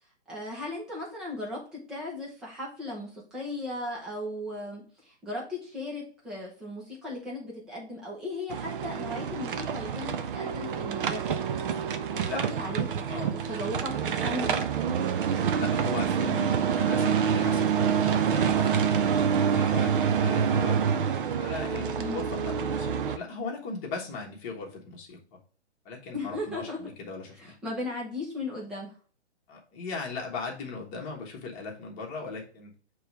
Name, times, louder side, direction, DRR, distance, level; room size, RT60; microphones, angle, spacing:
voice 1, 0.3-11.4 12.1-14.6 21.9-22.2 26.1-26.8 27.4-28.9, left 1 dB, ahead, -4 dB, 0.4 m, -37 dB
sound 1, 8.5-23.2, right 7 dB, 50° right, 0.7 m, -27 dB
voice 2, 15.5-20.8 21.4-25.4 25.8-27.6 29.5-32.7, left 4 dB, 20° left, -1 dB, 1.4 m, -38 dB
6.8 x 3.2 x 4.7 m, 0.41 s
hypercardioid pair, 155°, 34 cm